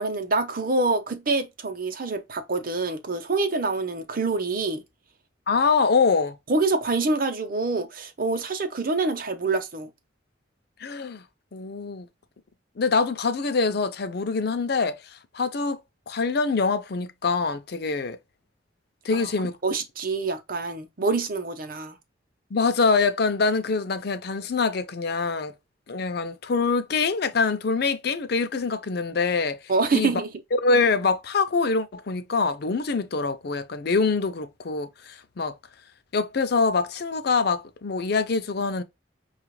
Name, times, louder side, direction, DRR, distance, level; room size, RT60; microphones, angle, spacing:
voice 1, 0.0-4.8 6.5-9.9 19.1-19.3 19.6-22.0 29.7-30.3, right 3 dB, 50° right, 0.8 m, -26 dB
voice 2, 5.5-6.4 10.8-11.2 11.5-12.1 12.8-15.0 15.3-15.8 16.1-18.2 19.0-19.6 22.5-25.5 25.9-29.6 29.9-30.1 30.6-35.5 36.1-38.8, left 4 dB, 55° left, 0.5 m, -24 dB
5.7 x 2.4 x 3.1 m
head